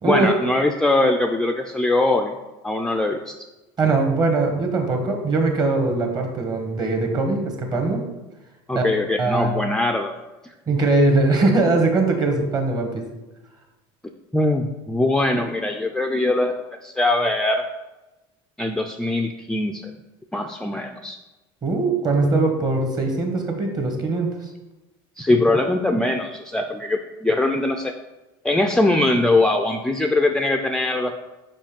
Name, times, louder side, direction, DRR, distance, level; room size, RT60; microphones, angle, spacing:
voice 1, 0.0-2.4 2.6-3.3 8.7-10.1 10.4-10.5 14.3-17.6 18.6-19.9 20.3-21.2 25.2-27.9 28.4-31.1, left 2 dB, 5° left, 4 dB, 0.4 m, -21 dB
voice 2, 3.8-8.0 8.7-8.8 9.2-9.5 10.7-13.0 21.6-24.5, right 3 dB, 35° right, 4 dB, 1.4 m, -21 dB
5.3 x 5.0 x 5.2 m, 1.1 s
supercardioid pair, 120°, 12 cm